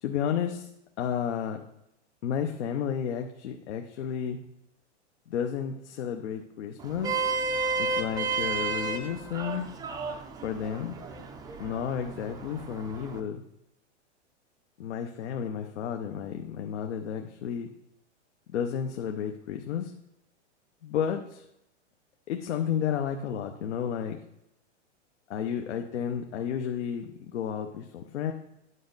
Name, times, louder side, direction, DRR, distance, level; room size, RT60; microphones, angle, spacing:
voice 1, 0.0-0.7 1.0-1.6 2.2-4.4 5.3-7.4 7.8-9.6 10.4-10.9 11.6-13.4 14.8-17.7 18.5-19.9 20.8-21.4 22.3-24.2 25.3-28.3, left 8 dB, 70° left, 4 dB, 0.8 m, -32 dB
Vehicle horn car horn honking, 6.8-13.2, right 4 dB, 10° right, 0.4 m, -32 dB
9.5 x 5.3 x 3.9 m, 0.84 s
hypercardioid pair, 130°, 36 cm